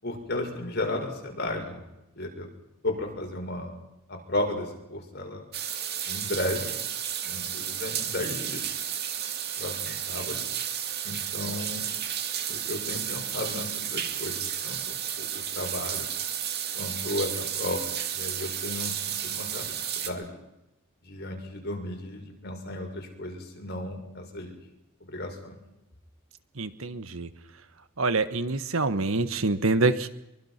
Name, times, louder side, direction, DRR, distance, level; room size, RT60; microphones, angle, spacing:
voice 1, 0.0-1.8 2.1-2.5 2.8-3.8 4.1-5.4 6.1-6.7 7.2-8.6 9.6-10.4 11.0-11.8 12.5-16.1 16.7-20.4 21.0-24.6 25.0-25.6, left 1 dB, 50° left, 2 dB, 6.3 m, -34 dB
sound 1, 5.5-20.1, right 9 dB, 50° right, 2.3 m, -32 dB
voice 2, 26.6-27.3 28.0-30.1, right 3 dB, 75° right, 11 dB, 1.5 m, -26 dB
24.5 x 23.5 x 6.0 m, 0.92 s
head